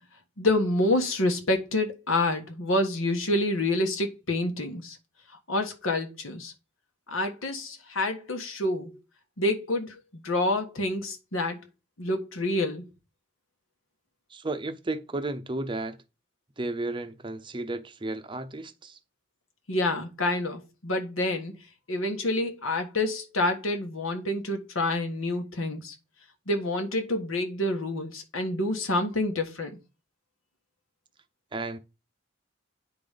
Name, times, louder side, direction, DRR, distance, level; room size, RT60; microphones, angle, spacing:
voice 1, 0.4-5.0 5.5-6.5 7.1-8.9 9.4-11.7 12.0-12.8 19.7-21.6 21.9-25.9 26.5-29.8, left 1 dB, 85° left, 1.5 m, -28 dB
voice 2, 14.3-16.0 16.6-19.0 31.5-31.8, right 2 dB, 25° right, 0.6 m, -33 dB
9.3 x 4.0 x 5.1 m
head